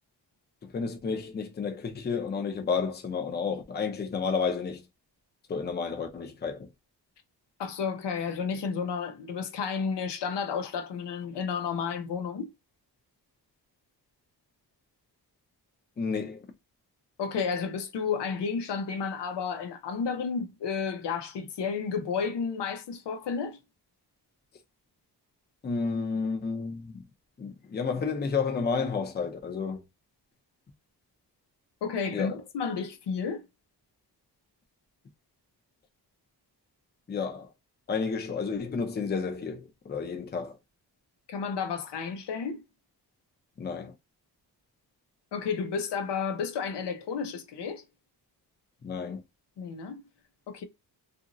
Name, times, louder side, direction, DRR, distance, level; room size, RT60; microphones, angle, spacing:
voice 1, 0.6-4.8 5.5-6.7 16.0-16.5 25.6-27.0 27.4-29.8 32.1-32.3 37.1-37.5 37.9-40.6 43.6-43.9 48.8-49.2, left 5 dB, 25° left, 0.6 m, -31 dB
voice 2, 7.6-12.5 17.2-23.6 31.8-33.4 41.3-42.6 45.3-47.8 49.6-50.0 50.5-50.6, left 6 dB, 75° left, 0.7 m, -32 dB
2.8 x 2.5 x 2.5 m
cardioid pair, 105°, 42 cm